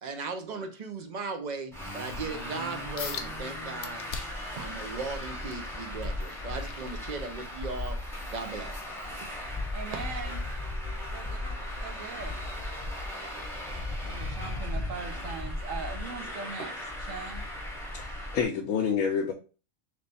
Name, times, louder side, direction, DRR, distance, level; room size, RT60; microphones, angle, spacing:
voice 1, 0.0-4.0 4.6-8.0 8.3-8.8, right 4 dB, 50° right, 0.5 m, -37 dB
Traffic noise roadway noise, 1.7-18.4, left 1 dB, ahead, 0.8 m, -36 dB
sound 1, 3.0-3.3 3.8-4.5 5.0-7.6 8.0-8.3 8.8-8.9, left 6 dB, 60° left, 0.7 m, -40 dB
voice 2, 9.7-10.4 11.1-11.5 11.8-12.4 14.0-17.4, right 5 dB, 70° right, 1.2 m, -40 dB
voice 3, 17.9-19.3, left 6 dB, 75° left, 1.0 m, -28 dB
3.3 x 3.2 x 4.0 m
omnidirectional pair, 1.4 m